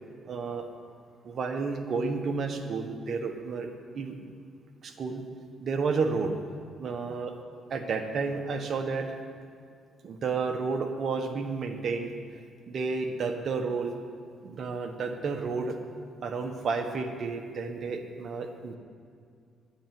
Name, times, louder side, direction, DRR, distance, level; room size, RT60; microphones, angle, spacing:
voice 1, 0.3-0.6 1.2-3.7 3.9-4.2 4.8-5.2 5.6-6.3 6.8-7.3 7.7-9.1 10.0-12.1 12.7-13.9 14.4-15.8 16.2-18.8, right 4 dB, 55° right, 5 dB, 1.4 m, -31 dB
10.0 x 9.8 x 7.8 m, 2.3 s
cardioid pair, 90°, 0 cm